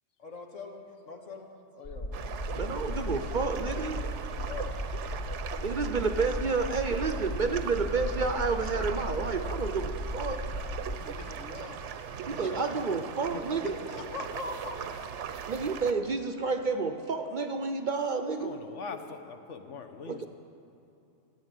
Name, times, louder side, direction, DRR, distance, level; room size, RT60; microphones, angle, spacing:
voice 1, 0.2-1.5 1.8-2.1 4.3-4.8 8.8-8.9 10.9-12.9 13.3-14.8, left 3 dB, 90° left, 2 dB, 1.8 m, -42 dB
sound 1, 1.9-11.0, left 1 dB, 45° left, 0.9 m, -36 dB
sound 2, 2.1-15.9, right 7 dB, 70° right, 1.0 m, -39 dB
voice 2, 2.5-4.0 5.6-10.6 12.3-13.7 15.5-18.6 20.1-20.3, right 4 dB, 50° right, 7 dB, 0.6 m, -30 dB
voice 3, 18.4-20.3, left 5 dB, 75° left, 7 dB, 1.3 m, -42 dB
15.0 x 8.9 x 8.9 m, 2.8 s
omnidirectional pair, 1.3 m